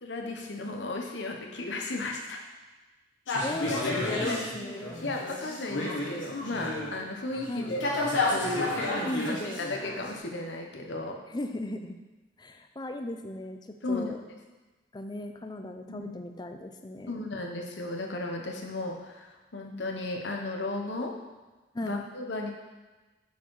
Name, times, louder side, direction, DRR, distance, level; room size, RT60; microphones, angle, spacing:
voice 1, 0.0-2.4 5.0-7.9 8.2-11.2 13.8-14.1 15.9-16.2 17.1-21.1 21.8-22.5, left 2 dB, 65° left, 2 dB, 0.9 m, -35 dB
sound 1, 3.3-7.0 7.3-10.2, left 2 dB, 80° left, 1.3 m, -31 dB
voice 2, 3.4-5.0 7.5-7.8 9.0-9.6 11.3-11.9 12.4-14.2 14.9-17.3 21.7-22.0, left 1 dB, 20° left, 6 dB, 0.4 m, -37 dB
7.0 x 4.6 x 4.6 m, 1.2 s
head